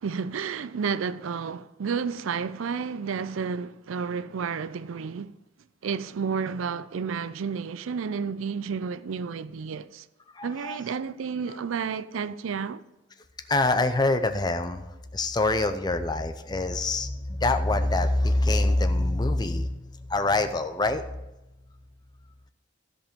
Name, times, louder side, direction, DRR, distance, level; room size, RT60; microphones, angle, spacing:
voice 1, 0.0-5.3 5.8-10.1 10.4-12.8, right 6 dB, 85° right, 0.4 m, -31 dB
voice 2, 10.3-10.8 13.5-21.0, left 2 dB, 20° left, 0.6 m, -25 dB
15.5 x 5.2 x 5.1 m
head